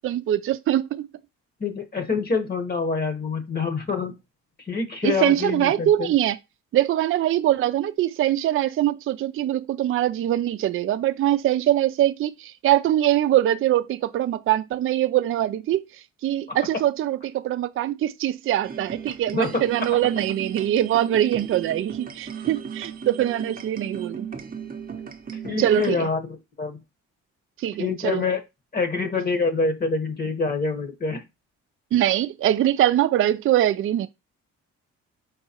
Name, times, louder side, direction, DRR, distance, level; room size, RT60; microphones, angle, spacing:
voice 1, 0.0-1.1 5.0-6.4 6.7-15.8 16.2-24.3 25.6-26.1 27.6-28.2 31.9-34.1, right 12 dB, 45° right, 0.4 m, -23 dB
voice 2, 1.6-4.1 4.6-6.1 19.3-19.6 25.4-26.8 27.8-28.4 28.7-31.2, left 4 dB, 30° left, 1.2 m, -26 dB
sound 1, 18.6-25.9, right 7 dB, 30° right, 0.8 m, -36 dB
4.5 x 3.9 x 2.9 m
cardioid pair, 90°, 30 cm